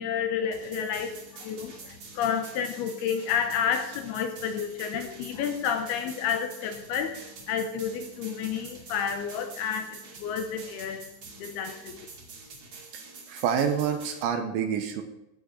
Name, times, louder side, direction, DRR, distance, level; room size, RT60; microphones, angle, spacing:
voice 1, 0.0-11.1 11.4-12.0, left 7 dB, 75° left, 6 dB, 2.3 m, -30 dB
sound 1, 0.5-14.2, right 4 dB, 50° right, 3.2 m, -46 dB
voice 2, 12.9-15.0, right 8 dB, 75° right, 6 dB, 3.3 m, -28 dB
16.5 x 6.2 x 6.5 m, 0.92 s
omnidirectional pair, 5.5 m